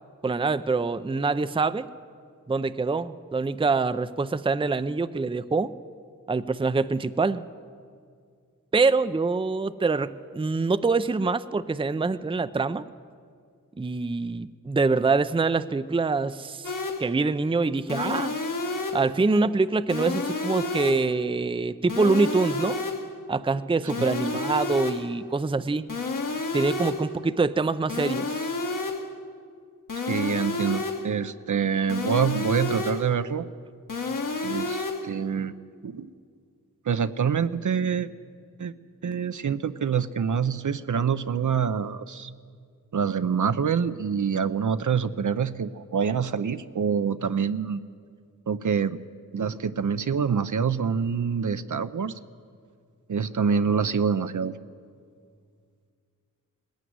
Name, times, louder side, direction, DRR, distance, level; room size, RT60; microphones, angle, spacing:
voice 1, 0.2-1.9 2.5-5.7 6.3-7.4 8.7-12.9 13.8-16.7 17.0-18.3 18.9-22.8 23.3-25.9 26.5-28.4, right 3 dB, 15° right, 12 dB, 0.5 m, -25 dB
sound 1, 16.6-17.2 17.9-19.2 19.9-21.2 21.9-23.2 23.9-25.2 25.9-27.2 27.9-29.2 29.9-31.2 31.9-33.2 33.9-35.2, left 3 dB, 65° left, 1.8 m, -30 dB
voice 2, 30.1-33.5 34.4-35.5 35.8-36.1 36.8-38.1 38.6-38.7 39.0-42.3 42.9-47.9 48.5-49.0 49.3-52.2 53.1-54.6, right 6 dB, 60° right, 11 dB, 0.7 m, -26 dB
19.5 x 16.0 x 9.5 m, 2.2 s
wide cardioid pair, 65°, 34 cm